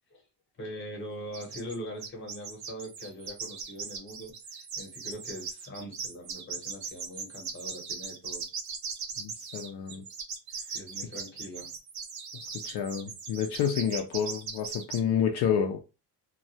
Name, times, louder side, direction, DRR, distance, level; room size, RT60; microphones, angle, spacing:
voice 1, 0.6-8.5 10.7-11.7, equal, 30° left, 0.8 m, -42 dB
sound 1, 1.3-15.0, right 5 dB, 45° right, 0.5 m, -39 dB
voice 2, 9.2-10.0 12.3-15.8, left 8 dB, 65° left, 0.5 m, -29 dB
2.3 x 2.1 x 2.7 m
cardioid pair, 165°, 42 cm